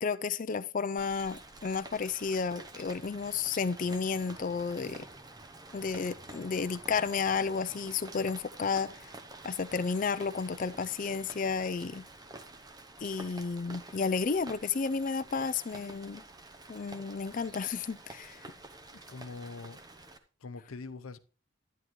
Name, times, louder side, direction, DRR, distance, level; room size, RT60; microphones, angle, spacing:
voice 1, 0.0-5.1 5.7-9.1 9.4-12.0 13.0-16.2 16.7-18.4, left 5 dB, 40° left, 0.4 m, -32 dB
Rain, 1.0-20.2, right 2 dB, 20° right, 0.8 m, -49 dB
voice 2, 18.9-19.8 20.4-21.2, left 3 dB, 90° left, 0.7 m, -43 dB
11.0 x 10.5 x 3.1 m
head